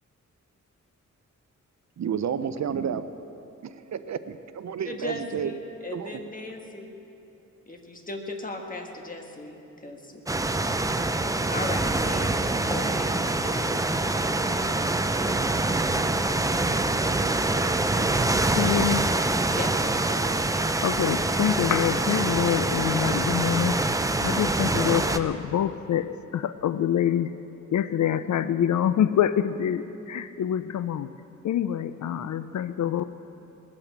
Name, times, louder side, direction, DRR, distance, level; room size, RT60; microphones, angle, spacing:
voice 1, 2.0-3.0 3.6-5.5 5.9-6.2, right 7 dB, 60° right, 11 dB, 0.6 m, -31 dB
voice 2, 4.9-6.9 7.7-10.2 11.5-14.3 19.5-19.9, left 2 dB, 25° left, 2 dB, 1.5 m, -37 dB
sound 1, 10.3-25.2, right 2 dB, 10° right, 0.4 m, -25 dB
voice 3, 18.6-19.0 20.6-23.9 24.2-27.4 27.7-31.1 31.4-33.0, left 10 dB, 70° left, 13 dB, 0.5 m, -26 dB
19.5 x 8.8 x 7.3 m, 3.0 s
wide cardioid pair, 135°, 31 cm